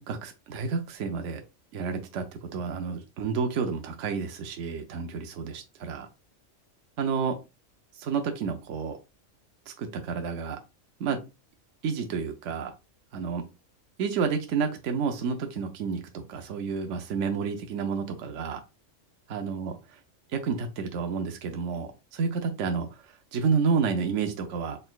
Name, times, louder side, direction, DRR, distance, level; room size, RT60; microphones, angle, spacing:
voice 1, 0.1-1.4 1.7-6.1 7.0-7.4 8.0-9.0 9.7-10.6 11.0-11.2 11.8-12.7 13.1-13.5 14.0-18.6 19.3-19.8 20.3-24.8, right 5 dB, 70° right, 5 dB, 1.0 m, -30 dB
4.1 x 3.8 x 2.3 m, 0.26 s
omnidirectional pair, 1.4 m